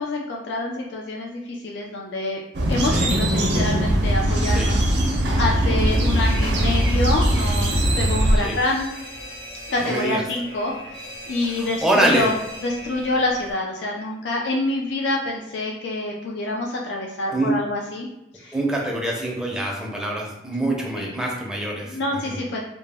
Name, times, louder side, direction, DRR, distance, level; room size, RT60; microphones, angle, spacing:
voice 1, 0.0-2.4 2.7-4.8 5.4-8.9 9.7-12.4 12.6-18.1 18.3-18.6 20.9-21.1 21.9-22.7, left 2 dB, 85° left, -1 dB, 0.3 m, -26 dB
sound 1, 2.5-8.4, right 1 dB, 80° right, 0.5 m, -20 dB
Alarm, 5.8-13.5, equal, 65° left, 0.8 m, -33 dB
voice 2, 9.8-10.2 11.5-12.3 17.3-17.5 18.5-21.9 22.2-22.4, right 1 dB, 5° right, -2 dB, 0.4 m, -24 dB
2.0 x 2.0 x 3.3 m, 0.87 s
head